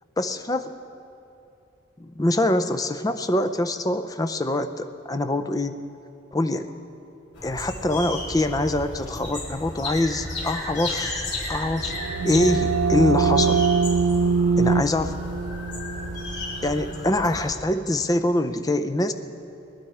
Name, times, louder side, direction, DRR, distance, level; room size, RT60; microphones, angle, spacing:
voice 1, 0.2-0.7 2.0-5.8 6.3-6.7 7.4-12.0 12.2-13.7 14.6-15.2 16.6-19.1, left 1 dB, 15° left, 8 dB, 0.5 m, -24 dB
sound 1, 7.3-17.5, left 1 dB, 55° left, 4.2 m, -33 dB
sound 2, 11.7-17.3, right 5 dB, 85° right, 0.4 m, -24 dB
20.5 x 11.5 x 4.8 m, 2.7 s
head